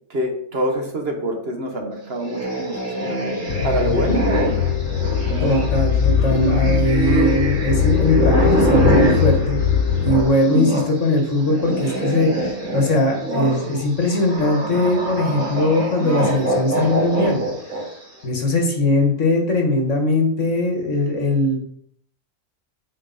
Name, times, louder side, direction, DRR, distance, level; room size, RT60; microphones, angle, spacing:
voice 1, 0.1-3.2 3.6-4.7, right 1 dB, 50° right, 2 dB, 1.4 m, -25 dB
sound 1, 2.2-10.9 11.2-18.0, right 1 dB, 70° right, 2.7 m, -24 dB
sound 2, 3.5-10.2, left 7 dB, 80° left, 1.1 m, -21 dB
voice 2, 5.4-9.6 10.0-17.4 18.2-21.6, left 2 dB, 65° left, 2 dB, 1.9 m, -20 dB
8.8 x 4.5 x 4.1 m, 0.65 s
omnidirectional pair, 1.4 m